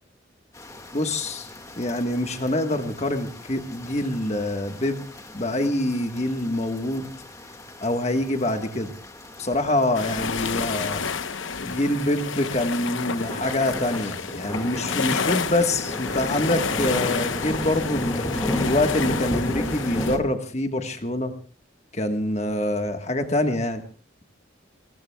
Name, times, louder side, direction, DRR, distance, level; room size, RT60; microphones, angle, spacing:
sound 1, 0.5-20.2, left 1 dB, 15° left, 1.8 m, -35 dB
voice 1, 0.9-1.5 1.8-5.0 5.3-7.1 7.8-8.9 9.4-11.1 11.6-21.3 21.9-23.8, left 1 dB, 35° left, 6 dB, 1.4 m, -25 dB
sound 2, 9.9-20.2, left 5 dB, 80° left, 0.9 m, -30 dB
29.0 x 20.0 x 2.3 m, 0.39 s
head